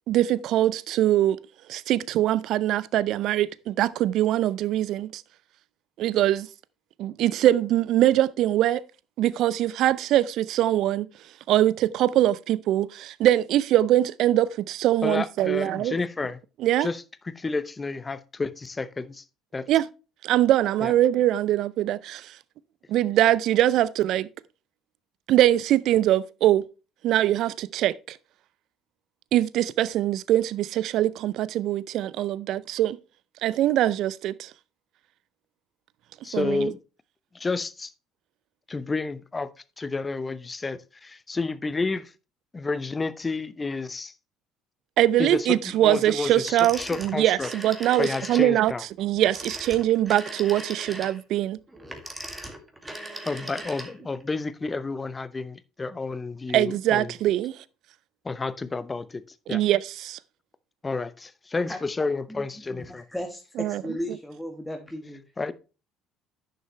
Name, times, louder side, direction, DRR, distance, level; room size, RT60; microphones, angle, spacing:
voice 1, 0.1-1.4 1.7-5.2 6.0-6.5 7.0-8.8 9.2-11.1 11.5-16.0 16.6-16.9 19.7-19.9 20.2-22.4 22.9-24.3 25.3-26.6 27.0-28.2 29.3-33.0 33.4-34.5 36.3-36.7 45.0-48.7 49.0-51.6 56.5-57.6 59.5-60.2 63.6-63.8, right 13 dB, 60° right, 0.4 m, -22 dB
voice 2, 15.0-16.4 16.8-19.2 19.5-19.7 20.8-20.9 36.2-36.8 37.3-37.9 38.7-39.5 39.8-40.8 41.3-42.1 42.5-44.1 45.2-47.5 48.0-48.8 53.2-57.1 58.2-59.6 60.8-63.0 65.4-65.5, left 3 dB, 25° left, 0.8 m, -30 dB
Telephone, 46.4-48.5 49.2-54.2, right 1 dB, 15° right, 2.2 m, -38 dB
voice 3, 62.7-65.2, equal, 5° left, 1.6 m, -35 dB
10.5 x 6.8 x 3.2 m
hypercardioid pair, 60°, 0 cm